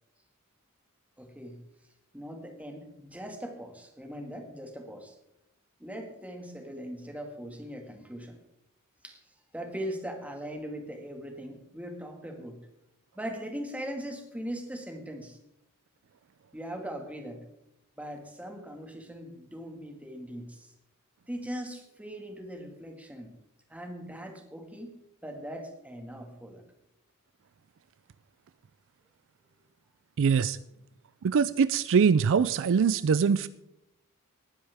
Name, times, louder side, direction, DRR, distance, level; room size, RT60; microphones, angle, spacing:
voice 1, 1.2-1.6 2.1-5.1 5.8-8.4 9.0-9.2 9.5-12.6 13.1-15.4 16.5-17.4 18.0-20.7 21.3-23.3 23.7-24.9 25.2-26.6, equal, 5° right, 3 dB, 1.8 m, -40 dB
voice 2, 30.2-30.6 31.2-33.5, right 6 dB, 60° right, 15 dB, 0.4 m, -23 dB
19.0 x 10.0 x 3.5 m, 0.82 s
head